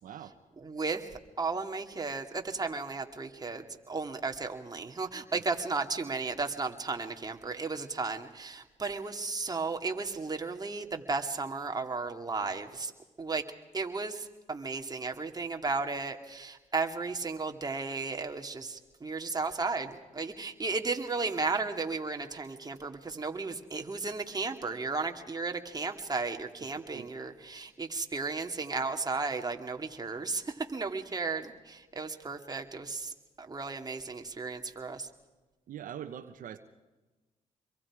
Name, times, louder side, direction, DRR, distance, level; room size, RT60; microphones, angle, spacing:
voice 1, 0.0-0.3 26.9-27.1 35.7-36.6, right 10 dB, 75° right, 8 dB, 1.2 m, -42 dB
voice 2, 0.6-1.1 1.4-12.9 13.2-13.4 13.7-35.1, right 4 dB, 30° right, 4 dB, 2.5 m, -34 dB
27.0 x 23.0 x 5.0 m, 1.2 s
cardioid pair, 65°, 14 cm